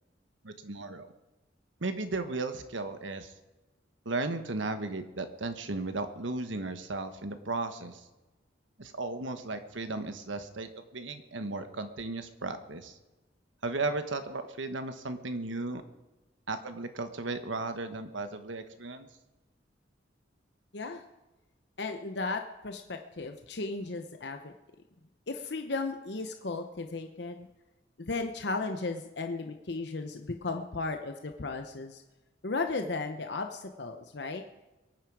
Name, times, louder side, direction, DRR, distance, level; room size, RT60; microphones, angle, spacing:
voice 1, 0.4-1.1 1.8-3.3 4.0-8.0 8.8-13.0 13.6-15.8 16.5-19.1, right 3 dB, 85° right, 9 dB, 1.3 m, -35 dB
voice 2, 21.8-24.5 25.3-27.5 28.0-32.0 32.4-34.4, left 3 dB, 60° left, 6 dB, 0.9 m, -35 dB
23.0 x 9.4 x 4.8 m, 1.1 s
head